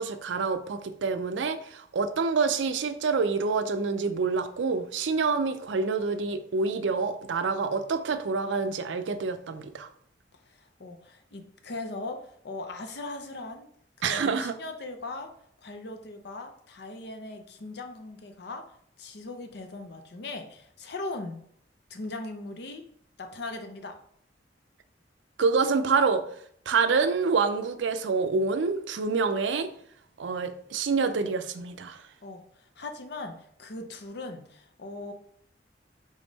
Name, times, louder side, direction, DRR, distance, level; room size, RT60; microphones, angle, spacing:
voice 1, 0.0-9.9 14.0-14.5 25.4-26.2 26.7-29.7 30.2-32.0, right 4 dB, 80° right, 10 dB, 0.5 m, -27 dB
voice 2, 10.4-13.7 14.0-15.3 15.6-18.7 19.0-21.4 21.9-22.9 23.2-24.0 32.2-35.1, left 2 dB, 60° left, 6 dB, 0.7 m, -39 dB
3.7 x 3.5 x 3.9 m, 0.65 s
head